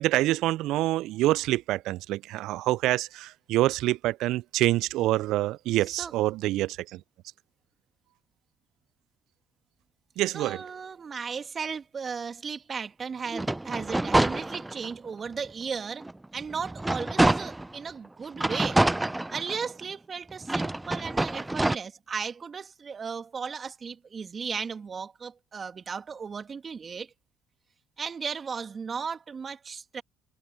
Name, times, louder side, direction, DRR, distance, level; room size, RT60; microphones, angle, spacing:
voice 1, 0.0-7.0 10.2-10.6, right 16 dB, 65° right, 0.4 m, -26 dB
voice 2, 10.3-18.8 19.3-27.1 28.0-30.0, right 6 dB, 35° right, 2.6 m, -36 dB
sound 1, 13.3-15.0 15.5-15.6 16.0-17.8 18.4-19.8 20.4-21.8, right 2 dB, 10° right, 0.6 m, -26 dB
hypercardioid pair, 60°, 0 cm